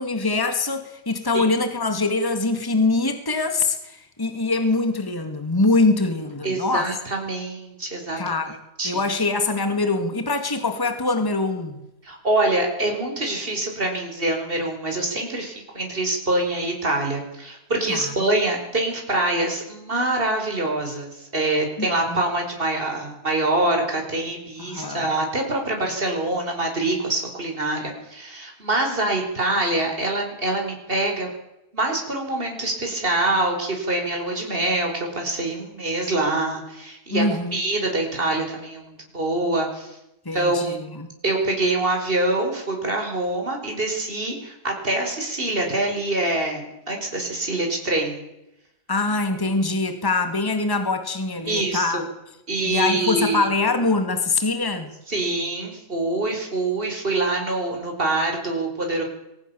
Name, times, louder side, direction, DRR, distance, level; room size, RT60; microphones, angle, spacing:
voice 1, 0.0-6.9 8.2-8.6 8.8-11.8 17.9-18.1 21.8-22.2 24.6-25.1 37.1-37.6 40.3-41.1 48.9-52.0 52.6-54.9, left 3 dB, 15° left, 7 dB, 2.2 m, -23 dB
voice 2, 6.4-8.2 8.8-9.0 12.0-31.3 31.7-37.3 37.5-40.0 40.3-40.8 41.2-48.2 51.5-52.0 52.5-53.5 55.1-59.0, right 2 dB, 35° right, 2 dB, 5.3 m, -25 dB
23.0 x 20.0 x 7.1 m, 0.87 s
omnidirectional pair, 1.7 m